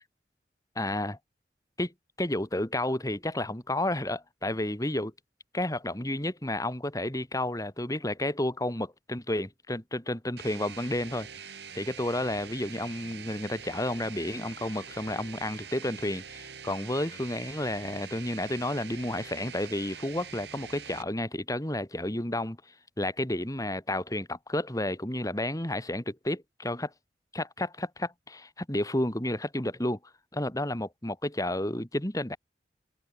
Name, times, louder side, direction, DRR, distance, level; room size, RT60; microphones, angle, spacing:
voice 1, 0.7-1.2 1.8-1.9 2.2-5.1 5.5-22.6 23.0-26.9 27.3-30.0 30.3-32.4, left 1 dB, 20° left, 3.0 m, -31 dB
sound 1, 10.4-21.0, right 7 dB, 75° right, 2.0 m, -44 dB
head